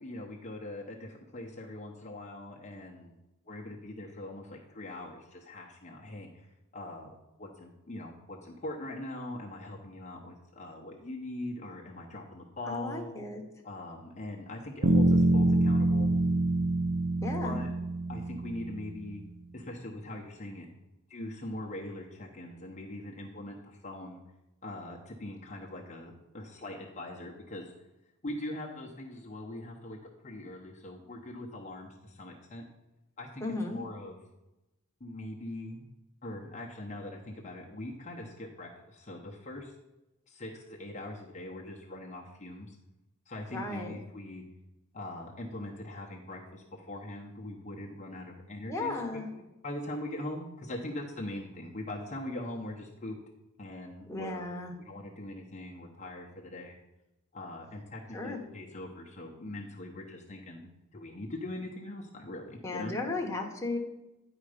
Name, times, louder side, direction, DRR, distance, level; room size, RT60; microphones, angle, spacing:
voice 1, 0.0-3.1 3.4-6.5 6.7-7.1 7.4-13.1 13.6-16.1 17.4-17.7 18.1-19.2 19.5-20.7 21.1-24.2 24.6-27.7 28.2-30.0 30.2-32.6 33.2-33.4 33.7-34.2 35.0-35.8 36.2-39.7 40.3-42.8 43.3-44.4 44.9-49.0 49.3-53.2 53.6-56.7 57.3-62.9, left 1 dB, 35° left, -2 dB, 0.9 m, -41 dB
voice 2, 12.6-13.4 17.2-17.6 33.4-33.8 43.5-43.9 48.7-49.3 54.1-54.7 58.1-58.4 62.6-63.8, left 2 dB, 15° left, 0 dB, 1.2 m, -35 dB
sound 1, 14.8-18.9, right 2 dB, 70° right, 0.8 m, -26 dB
9.6 x 4.9 x 5.0 m, 0.97 s
head